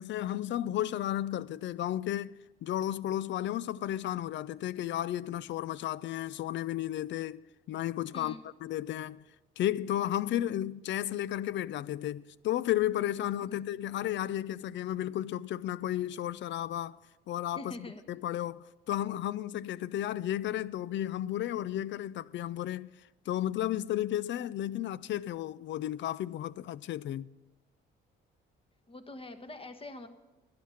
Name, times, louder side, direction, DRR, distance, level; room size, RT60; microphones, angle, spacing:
voice 1, 0.0-2.3 2.6-7.4 7.7-9.2 9.6-17.0 17.3-17.6 18.1-22.9 23.3-27.3, left 12 dB, 60° left, 0.4 m, -33 dB
voice 2, 8.1-8.4 13.5-13.6 17.5-18.0 28.9-30.1, left 2 dB, 25° left, 1.3 m, -44 dB
12.0 x 10.5 x 5.8 m
cardioid pair, 80°, 21 cm